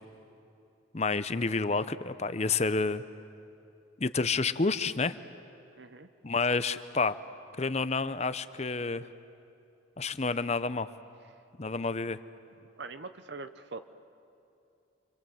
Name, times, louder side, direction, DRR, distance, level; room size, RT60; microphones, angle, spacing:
voice 1, 0.9-3.0 4.0-5.2 6.2-7.2 7.6-9.1 10.0-10.9 11.6-12.2, left 4 dB, 35° left, 13 dB, 0.7 m, -29 dB
voice 2, 5.8-6.1 12.8-13.8, right 3 dB, 55° right, 10 dB, 0.8 m, -42 dB
29.0 x 25.0 x 7.8 m, 2.7 s
head